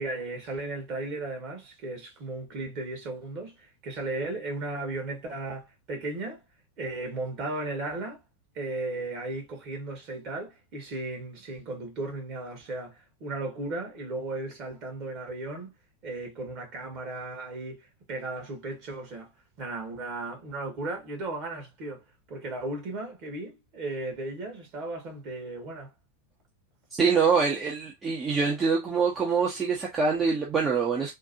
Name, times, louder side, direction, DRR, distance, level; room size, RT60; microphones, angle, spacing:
voice 1, 0.0-6.4 6.8-8.2 8.5-15.7 16.0-19.3 19.6-22.0 22.3-25.9, right 2 dB, 40° right, 2.1 m, -35 dB
voice 2, 27.0-31.1, right 5 dB, 20° right, 1.0 m, -25 dB
3.7 x 2.6 x 2.8 m
figure-of-eight pair, 90°, 0 cm